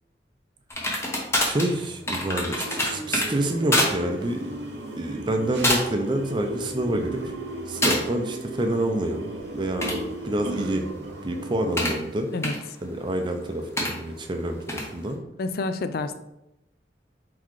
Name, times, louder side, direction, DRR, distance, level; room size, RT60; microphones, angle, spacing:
sound 1, 0.7-3.3 3.7-3.9 4.3-4.5 5.2-5.4 5.6-6.0 6.4-6.9 7.8-8.0 9.6-12.0 12.4-12.6 13.8-13.9 14.7-14.9, left 1 dB, 15° left, 0.7 m, -26 dB
voice 1, 1.4-4.5 5.0-7.3 7.7-10.9 11.2-12.3 12.8-15.2, right 1 dB, 25° right, 5 dB, 0.5 m, -27 dB
sound 2, 2.3-11.9, right 1 dB, 85° right, 0.6 m, -36 dB
voice 2, 15.4-16.1, left 3 dB, 55° left, 10 dB, 0.4 m, -28 dB
4.2 x 4.0 x 3.1 m, 0.89 s
head